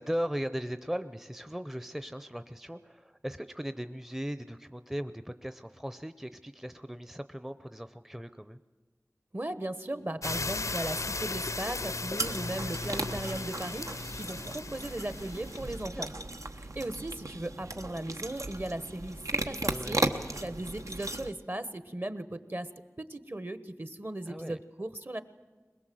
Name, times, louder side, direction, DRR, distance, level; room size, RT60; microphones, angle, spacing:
voice 1, 0.0-8.6 15.6-16.0 19.6-20.2 24.3-24.6, equal, 5° right, 11 dB, 0.6 m, -38 dB
voice 2, 9.3-16.1 16.6-20.0 20.4-22.7 23.0-25.2, right 1 dB, 40° right, 13 dB, 1.2 m, -37 dB
sound 1, 10.2-15.8, left 3 dB, 80° left, 0.6 m, -36 dB
sound 2, 12.2-21.3, right 2 dB, 85° right, 1.0 m, -36 dB
21.5 x 21.0 x 7.7 m, 1.3 s
wide cardioid pair, 45°, 5 cm